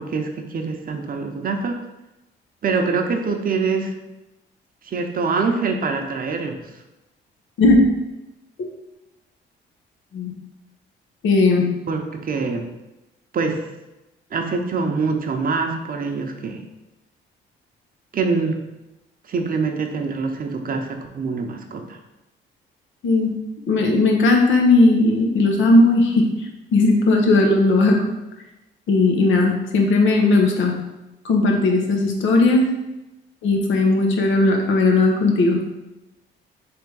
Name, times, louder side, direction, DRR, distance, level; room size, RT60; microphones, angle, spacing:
voice 1, 0.0-1.7 2.6-3.9 4.8-6.7 11.9-12.7 13.3-13.6 14.3-16.6 18.1-18.6 19.3-22.0, right 4 dB, 45° right, 4 dB, 0.7 m, -24 dB
voice 2, 11.2-11.6 23.0-23.3 23.7-26.3 26.7-28.0 28.9-30.7 31.2-32.6 33.4-35.6, left 2 dB, 80° left, 2 dB, 0.9 m, -17 dB
3.5 x 3.3 x 4.7 m, 0.99 s
cardioid pair, 90°, 20 cm